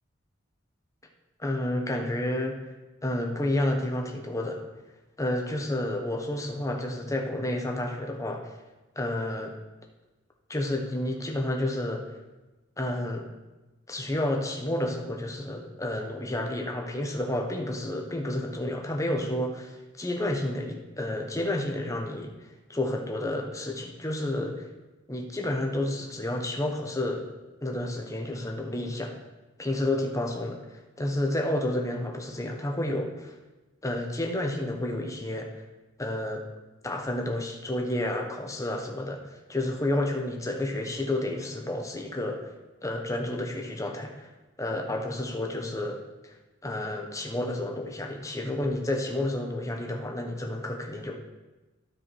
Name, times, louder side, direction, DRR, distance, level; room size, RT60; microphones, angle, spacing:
voice 1, 1.4-2.6 3.0-4.6 5.2-8.6 9.0-9.5 10.5-12.0 12.8-13.2 13.9-22.3 22.7-24.7 25.1-27.3 27.6-29.1 29.6-33.3 33.8-35.6 36.0-36.4 36.8-42.5 42.8-44.3 44.6-46.3 46.6-51.2, left 1 dB, 15° left, 2 dB, 1.0 m, -30 dB
12.5 x 4.8 x 4.6 m, 1.1 s
head